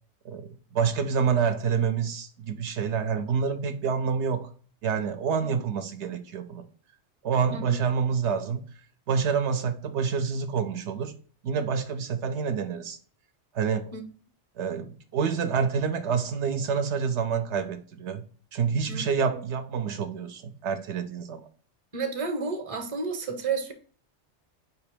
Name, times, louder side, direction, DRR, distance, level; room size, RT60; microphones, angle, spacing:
voice 1, 0.2-4.5 4.8-6.7 7.2-8.6 9.1-11.1 11.4-13.0 13.5-13.9 14.6-18.2 18.5-21.4, right 6 dB, 75° right, 0.8 m, -27 dB
voice 2, 21.9-23.7, right 4 dB, 35° right, 0.8 m, -31 dB
5.0 x 2.8 x 3.4 m
omnidirectional pair, 1.2 m